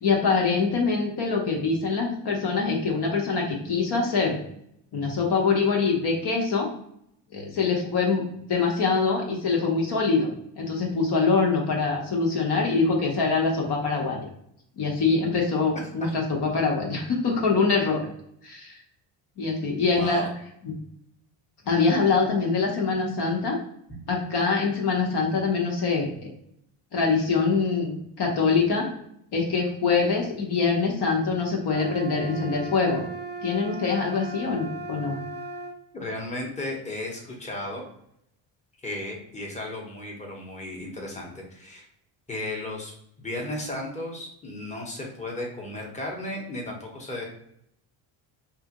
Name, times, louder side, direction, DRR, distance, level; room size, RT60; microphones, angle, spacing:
voice 1, 0.0-4.4 4.9-6.7 7.3-10.3 10.6-14.2 14.8-18.1 18.4-18.8 19.4-20.3 20.6-20.7 21.7-23.6 24.1-26.3 26.9-28.9 29.3-33.0 33.4-35.2, left 4 dB, 50° left, 0 dB, 1.0 m, -24 dB
voice 2, 19.9-20.3 35.9-37.8 38.8-41.9 42.3-42.9 43.2-47.2, left 1 dB, 15° left, -1 dB, 1.0 m, -34 dB
sound 1, 31.6-35.8, right 3 dB, 20° right, 0.4 m, -37 dB
3.2 x 2.5 x 2.9 m, 0.73 s
cardioid pair, 95°, 50 cm